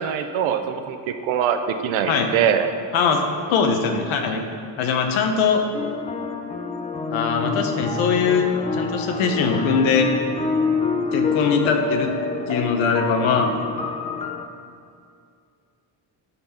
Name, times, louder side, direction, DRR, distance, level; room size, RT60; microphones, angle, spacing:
voice 1, 0.0-2.7, right 8 dB, 80° right, 8 dB, 0.7 m, -23 dB
voice 2, 3.5-4.4 4.8-5.6 7.1-10.1 11.1-12.1 12.5-13.5, left 5 dB, 90° left, 4 dB, 1.0 m, -21 dB
sound 1, 5.7-14.4, left 4 dB, 15° left, 0.4 m, -27 dB
11.0 x 4.3 x 4.2 m, 2.3 s
cardioid pair, 120°, 47 cm